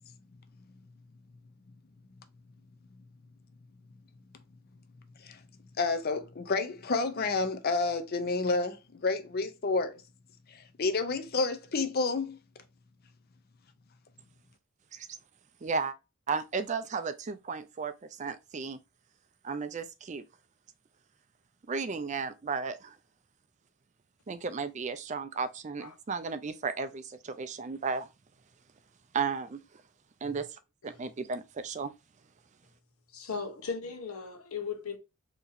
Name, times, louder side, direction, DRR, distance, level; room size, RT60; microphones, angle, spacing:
voice 1, 5.8-10.0 10.5-12.4, left 3 dB, 45° left, 0.5 m, -30 dB
voice 2, 15.6-15.9 16.3-17.9 18.2-18.8 19.4-20.2 21.7-22.9 24.3-28.1 29.1-29.6 30.2-30.5 30.8-31.9, right 5 dB, 35° right, 0.4 m, -34 dB
voice 3, 33.1-35.0, left 5 dB, 80° left, 1.0 m, -37 dB
4.0 x 2.9 x 2.6 m
head